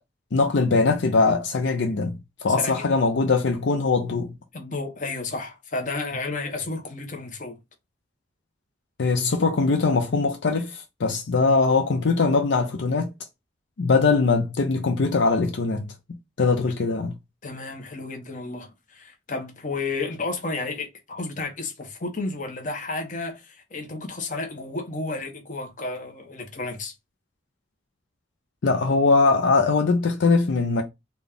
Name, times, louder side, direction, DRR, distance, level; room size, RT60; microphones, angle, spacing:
voice 1, 0.3-2.1 2.4-4.3 9.0-13.1 13.8-15.9 16.4-17.1 28.6-30.8, left 4 dB, 75° left, 0.5 m, -21 dB
voice 2, 2.6-2.9 4.5-7.6 17.4-26.9, left 3 dB, 45° left, 0.9 m, -32 dB
4.0 x 2.3 x 3.4 m
head